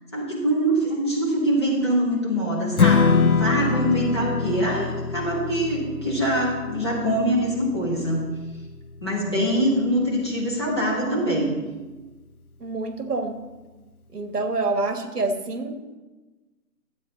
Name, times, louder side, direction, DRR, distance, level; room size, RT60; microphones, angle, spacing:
voice 1, 0.1-8.3 9.0-11.5, right 1 dB, 15° left, -6 dB, 1.2 m, -24 dB
Strum, 2.8-9.1, left 5 dB, 60° left, 0.6 m, -24 dB
voice 2, 12.6-13.4 14.1-16.0, right 3 dB, 70° right, 6 dB, 1.5 m, -27 dB
12.0 x 8.3 x 4.0 m, 1.2 s
figure-of-eight pair, 170°, 49 cm